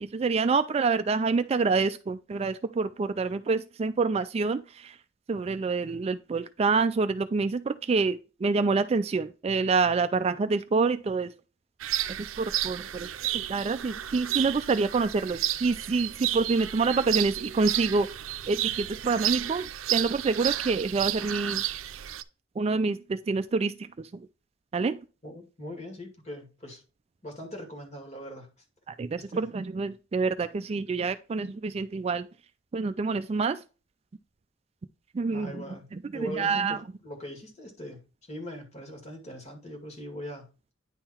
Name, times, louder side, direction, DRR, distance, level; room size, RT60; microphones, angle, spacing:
voice 1, 0.0-4.9 5.3-11.3 12.4-13.1 13.5-18.1 18.5-21.6 22.6-23.7 24.7-25.0 29.0-32.3 32.7-33.6 35.1-35.6 36.2-36.8, right 4 dB, 30° right, 0.3 m, -27 dB
sound 1, 11.8-22.2, right 13 dB, 85° right, 0.5 m, -32 dB
voice 2, 25.2-26.8 27.2-28.5 29.2-29.5 35.3-40.5, equal, 35° left, 2.2 m, -41 dB
9.8 x 3.7 x 4.3 m
head